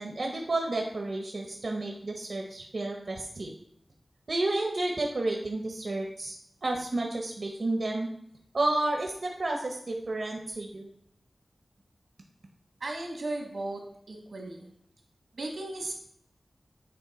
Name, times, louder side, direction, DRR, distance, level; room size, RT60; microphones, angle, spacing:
voice 1, 0.0-3.5 4.3-6.3 6.6-8.1 8.5-10.9, right 2 dB, 60° right, 1 dB, 0.8 m, -31 dB
voice 2, 12.8-13.8 14.1-14.7 15.3-15.9, right 2 dB, 85° right, 1 dB, 1.4 m, -35 dB
8.6 x 3.2 x 4.2 m, 0.71 s
wide cardioid pair, 85°, 0 cm